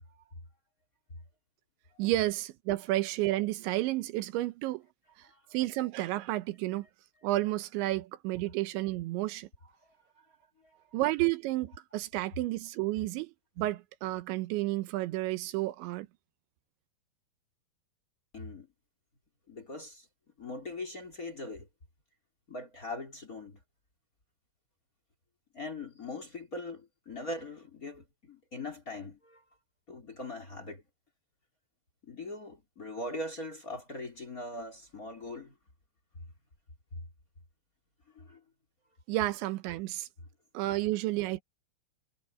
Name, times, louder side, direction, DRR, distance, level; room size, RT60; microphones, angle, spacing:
voice 1, 2.0-4.8 5.5-6.9 7.2-9.5 10.9-13.3 13.6-16.1 39.1-40.1 40.6-41.4, right 17 dB, 85° right, 3.3 m, -31 dB
voice 2, 10.1-10.8 18.3-18.7 19.5-20.1 20.4-21.7 22.5-23.6 25.5-29.4 29.9-30.8 32.0-35.6 38.1-38.4, left 2 dB, 20° left, 3.0 m, -41 dB
omnidirectional pair, 5.2 m